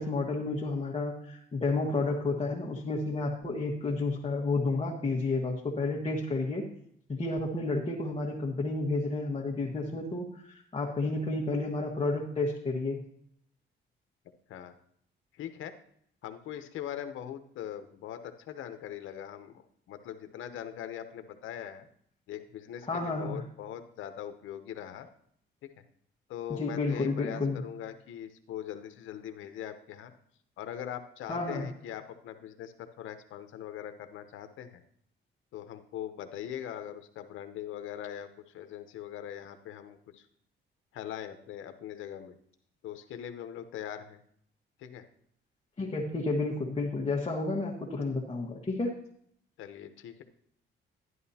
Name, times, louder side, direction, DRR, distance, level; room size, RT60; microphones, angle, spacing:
voice 1, 0.0-6.7 7.1-13.0 22.9-23.4 26.5-27.6 31.3-31.7 45.8-48.9, left 3 dB, 30° left, -2 dB, 1.5 m, -31 dB
voice 2, 15.3-15.7 16.2-19.6 19.9-21.9 22.3-25.1 26.3-30.1 30.6-34.8 35.5-38.3 38.5-40.3 40.9-42.4 42.8-44.2 44.8-45.0 49.6-50.2, left 10 dB, 80° left, 8 dB, 0.8 m, -41 dB
11.0 x 11.0 x 2.8 m, 0.66 s
cardioid pair, 90°, 20 cm